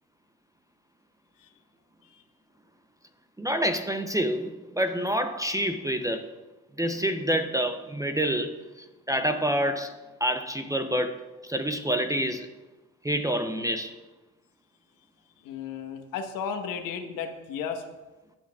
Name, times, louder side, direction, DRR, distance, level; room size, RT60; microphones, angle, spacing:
voice 1, 3.4-6.3 6.8-11.2 11.4-12.5 13.0-14.0, equal, 10° right, 7 dB, 0.6 m, -27 dB
voice 2, 15.4-17.8, left 6 dB, 60° left, 5 dB, 1.3 m, -34 dB
18.5 x 6.1 x 2.4 m, 1.1 s
hypercardioid pair, 70°, 38 cm